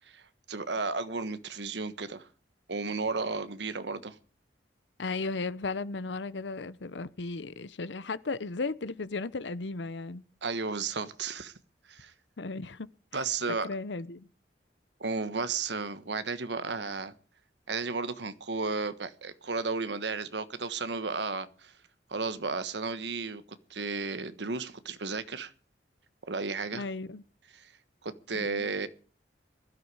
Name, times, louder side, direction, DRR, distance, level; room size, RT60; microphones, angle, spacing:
voice 1, 0.1-2.3 2.7-4.2 10.4-11.5 11.9-12.1 13.1-13.7 15.0-17.1 17.7-21.7 22.1-23.4 23.7-25.5 26.3-26.8 27.5-27.7 28.0-28.9, right 4 dB, 80° right, 1.2 m, -33 dB
voice 2, 5.0-10.2 12.4-13.2 13.6-14.3 26.7-27.2 28.3-28.7, left 3 dB, 90° left, 0.8 m, -35 dB
19.5 x 12.5 x 4.8 m
head